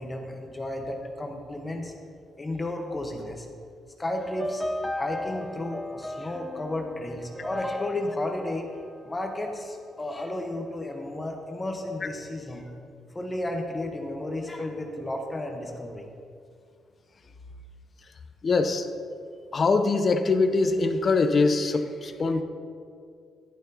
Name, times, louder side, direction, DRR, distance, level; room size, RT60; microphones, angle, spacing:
voice 1, 0.0-1.9 2.4-3.5 4.0-4.6 4.9-8.7 9.0-12.7 13.1-16.1, left 1 dB, 20° left, 2 dB, 1.1 m, -33 dB
sound 1, 4.2-9.5, left 1 dB, ahead, 0.5 m, -36 dB
voice 2, 18.4-18.9 19.5-22.4, left 3 dB, 40° left, 8 dB, 0.6 m, -23 dB
11.5 x 11.5 x 2.9 m, 2.3 s
cardioid pair, 90°, 0 cm